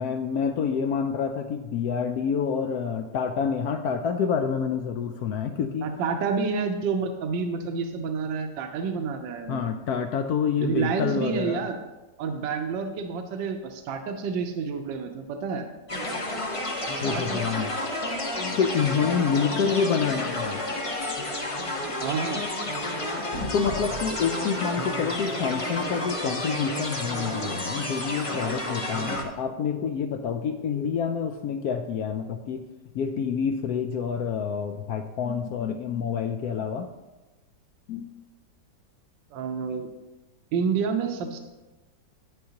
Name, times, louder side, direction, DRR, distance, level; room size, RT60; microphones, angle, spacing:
voice 1, 0.0-5.9 9.5-11.6 17.0-17.8 18.6-20.6 23.5-32.6 32.9-36.9 37.9-38.1, left 6 dB, 75° left, 7 dB, 0.9 m, -27 dB
voice 2, 5.8-9.7 10.6-11.8 12.2-15.7 16.9-17.7 21.8-22.5 39.3-39.9 40.5-41.4, right 5 dB, 75° right, 5 dB, 1.4 m, -29 dB
sound 1, 15.9-29.2, left 1 dB, 35° left, 0.5 m, -30 dB
9.2 x 9.1 x 2.9 m, 1.1 s
omnidirectional pair, 2.0 m